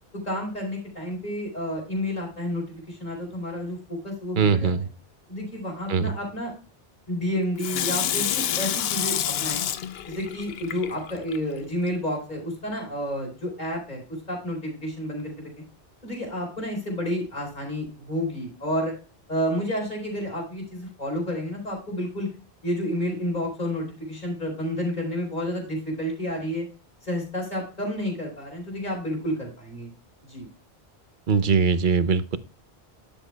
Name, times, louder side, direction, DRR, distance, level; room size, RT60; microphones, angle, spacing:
voice 1, 0.1-4.7 5.3-6.5 7.1-9.6 10.1-15.5 16.0-19.0 19.3-22.3 22.6-26.7 27.0-29.9 30.3-30.5, equal, 45° left, -1 dB, 4.7 m, -30 dB
voice 2, 4.4-4.8 5.9-6.1 31.3-32.4, right 5 dB, 55° right, 13 dB, 0.9 m, -21 dB
Water tap faucet / Sink (filling or washing), 7.6-11.4 11.9-12.0, left 9 dB, 70° left, 0.8 m, -28 dB
12.0 x 7.2 x 2.2 m, 0.36 s
omnidirectional pair, 1.1 m